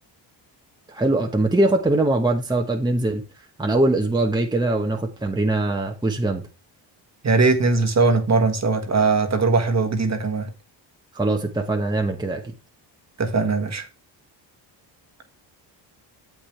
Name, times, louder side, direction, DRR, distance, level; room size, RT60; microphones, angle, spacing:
voice 1, 0.9-3.2 3.6-6.4 11.1-12.4, right 2 dB, 10° right, 1.1 m, -22 dB
voice 2, 7.2-10.5 13.2-13.9, right 3 dB, 35° right, 1.5 m, -20 dB
8.7 x 7.7 x 3.3 m
cardioid pair, 90°, 47 cm